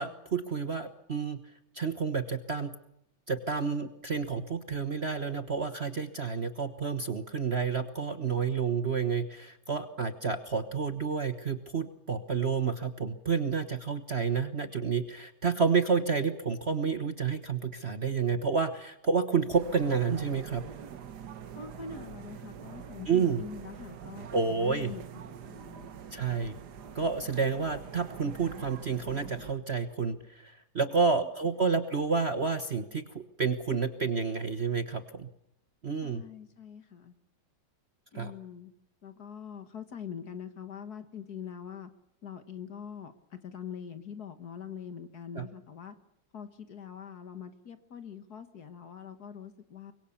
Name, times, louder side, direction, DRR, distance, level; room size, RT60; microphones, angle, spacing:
voice 1, 0.0-1.4 1.7-2.7 3.3-20.6 23.1-23.4 24.3-24.9 26.1-26.6 26.9-35.3 35.8-36.2 38.1-38.3 45.3-45.5, right 5 dB, 35° right, 9 dB, 1.2 m, -30 dB
sound 1, 19.5-29.5, right 8 dB, 55° right, 1.6 m, -45 dB
voice 2, 21.6-25.9 30.8-31.3 36.0-37.1 38.1-38.7 39.0-41.9 42.2-46.0 46.3-49.9, left 7 dB, 50° left, 10 dB, 1.8 m, -44 dB
24.5 x 22.5 x 7.2 m, 0.80 s
omnidirectional pair, 2.3 m